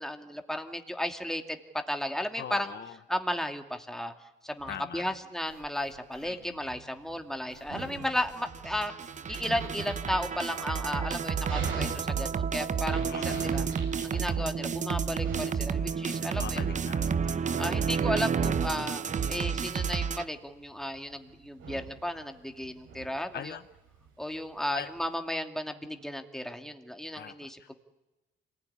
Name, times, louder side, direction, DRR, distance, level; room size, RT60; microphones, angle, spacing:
voice 1, 0.0-1.6 1.9-2.7 3.1-4.1 4.4-8.9 9.3-13.6 14.0-16.6 17.6-23.5 24.2-27.7, left 1 dB, ahead, 5 dB, 2.5 m, -34 dB
voice 2, 2.3-3.0 4.7-5.2 6.2-6.6 13.1-13.5 16.4-17.0 23.3-23.7 24.7-24.9 27.2-27.7, left 9 dB, 55° left, 12 dB, 0.9 m, -41 dB
sound 1, 4.6-12.9, right 5 dB, 65° right, 6.9 m, -55 dB
Dog, 5.9-25.1, right 5 dB, 90° right, 7.8 m, -43 dB
sound 2, 8.3-20.2, right 6 dB, 40° right, 0.8 m, -31 dB
26.0 x 20.0 x 10.0 m, 1.1 s
cardioid pair, 90°, 20 cm